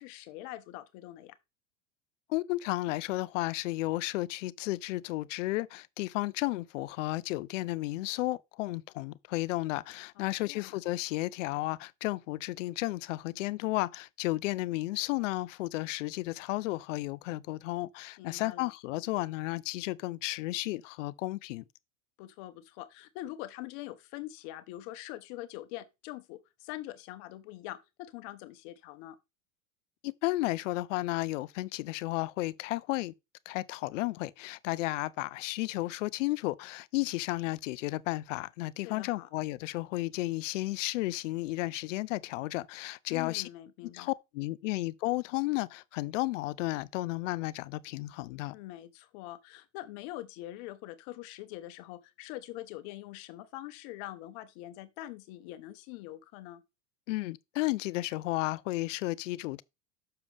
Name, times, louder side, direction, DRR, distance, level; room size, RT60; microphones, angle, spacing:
voice 1, 0.0-1.4 10.2-10.7 18.2-18.7 22.2-29.2 38.8-39.3 43.1-44.1 48.5-56.6, left 15 dB, 55° left, 1.0 m, -44 dB
voice 2, 2.3-21.6 30.0-33.1 33.5-43.5 43.9-48.5 57.1-59.6, left 19 dB, 70° left, 0.6 m, -33 dB
6.9 x 6.7 x 3.4 m
supercardioid pair, 125°, 39 cm